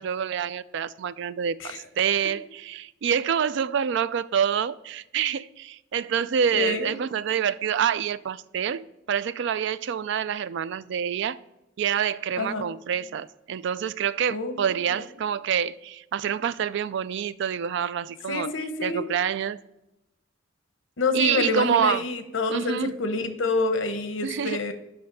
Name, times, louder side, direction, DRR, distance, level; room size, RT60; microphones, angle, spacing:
voice 1, 0.0-11.4 11.8-19.6 21.1-22.0 22.5-22.9 24.2-24.6, right 8 dB, 65° right, 0.3 m, -27 dB
voice 2, 6.5-6.9 12.3-12.6 14.3-15.0 18.3-19.1 21.0-24.7, left 3 dB, 80° left, 0.9 m, -27 dB
6.4 x 5.7 x 5.3 m
head